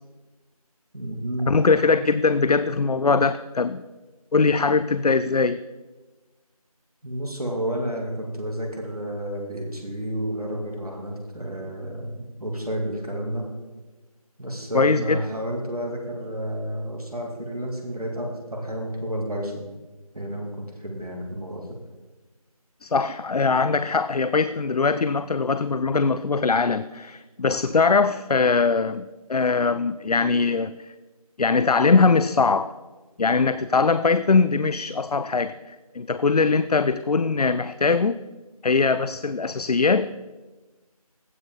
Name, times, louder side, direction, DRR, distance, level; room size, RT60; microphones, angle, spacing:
voice 1, 0.9-1.6 7.0-13.4 14.4-19.7 20.1-21.7, right 1 dB, 75° right, 0 dB, 2.6 m, -31 dB
voice 2, 1.5-3.8 4.3-5.6 14.7-15.2 22.8-30.7 31.4-32.7 33.2-38.2 38.6-40.1, left 4 dB, 80° left, 14 dB, 0.4 m, -21 dB
15.5 x 5.5 x 3.9 m, 1.2 s
figure-of-eight pair, 175°, 19 cm